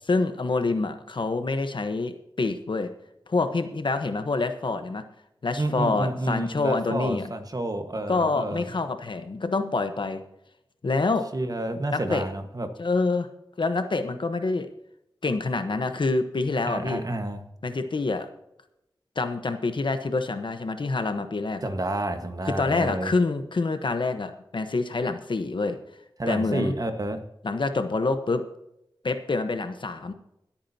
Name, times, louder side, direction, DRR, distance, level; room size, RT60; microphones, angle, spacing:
voice 1, 0.1-2.9 3.3-5.0 5.4-7.3 8.1-10.2 10.8-11.3 11.9-12.2 12.8-13.3 13.6-14.7 15.2-17.0 17.6-18.3 19.2-21.6 22.5-25.8 26.3-26.7 27.4-28.4 29.0-30.1, left 3 dB, 65° left, 8 dB, 1.1 m, -26 dB
voice 2, 5.6-8.6 11.3-12.7 16.6-17.5 21.6-23.1 26.2-27.2, right 1 dB, 45° right, 7 dB, 1.5 m, -30 dB
25.0 x 8.7 x 2.9 m, 0.83 s
wide cardioid pair, 65°, 9 cm